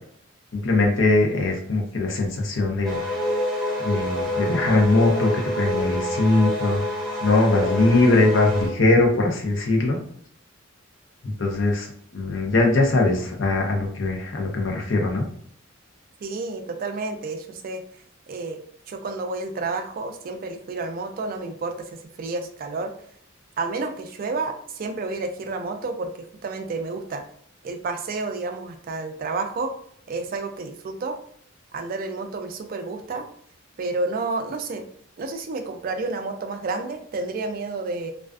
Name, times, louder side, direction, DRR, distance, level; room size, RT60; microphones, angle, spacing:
voice 1, 0.5-3.1 3.8-6.8 7.2-10.0 11.2-11.9 12.1-15.3, left 2 dB, 65° left, 1 dB, 0.6 m, -21 dB
sound 1, 2.8-8.7, left 1 dB, ahead, 0.7 m, -27 dB
voice 2, 16.2-17.8 18.3-18.6 18.9-21.8 22.2-22.9 23.6-27.2 27.6-29.7 30.1-31.2 31.7-33.3 33.8-34.8 35.2-38.1, right 3 dB, 45° right, 6 dB, 0.3 m, -30 dB
2.4 x 2.3 x 2.3 m, 0.64 s
head